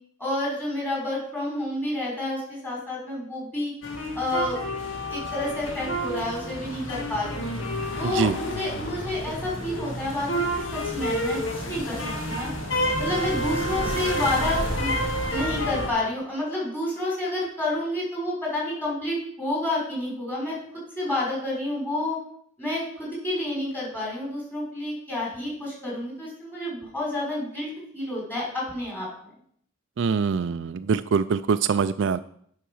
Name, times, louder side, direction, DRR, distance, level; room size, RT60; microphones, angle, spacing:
voice 1, 0.2-3.7 4.1-4.6 5.1-7.4 8.0-12.5 13.0-14.9 15.3-20.6 20.9-22.2 22.6-29.3, left 1 dB, 10° left, -5 dB, 5.1 m, -29 dB
sound 1, 3.8-15.9, equal, 70° left, 1.8 m, -29 dB
voice 2, 30.0-32.2, right 6 dB, 60° right, 12 dB, 0.4 m, -23 dB
10.0 x 5.8 x 6.2 m, 0.64 s
head